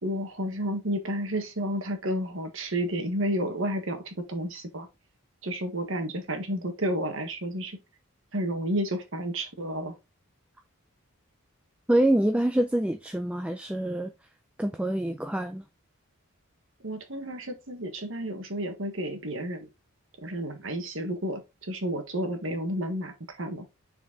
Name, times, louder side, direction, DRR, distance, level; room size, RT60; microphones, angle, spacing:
voice 1, 0.0-4.9 5.4-7.8 8.3-9.9 16.8-19.7 20.2-23.7, right 1 dB, 60° right, 1.5 m, -31 dB
voice 2, 11.9-14.1 14.6-15.6, right 1 dB, 5° right, 0.4 m, -25 dB
6.1 x 4.5 x 3.7 m
head